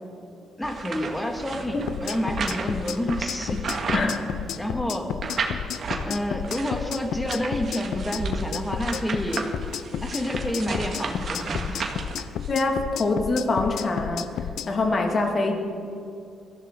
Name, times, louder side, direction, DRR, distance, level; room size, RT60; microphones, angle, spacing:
voice 1, 0.6-3.7 4.6-5.1 6.0-9.5 10.0-11.9, equal, 10° left, 3 dB, 1.9 m, -29 dB
sound 1, 0.6-4.7 5.2-6.1 6.4-12.5, right 4 dB, 50° right, 1.7 m, -33 dB
sound 2, 1.9-14.7, left 9 dB, 80° left, 0.6 m, -32 dB
voice 2, 12.5-15.6, left 3 dB, 40° left, 2 dB, 2.2 m, -24 dB
22.0 x 14.5 x 3.8 m, 2.5 s
cardioid pair, 120°, 0 cm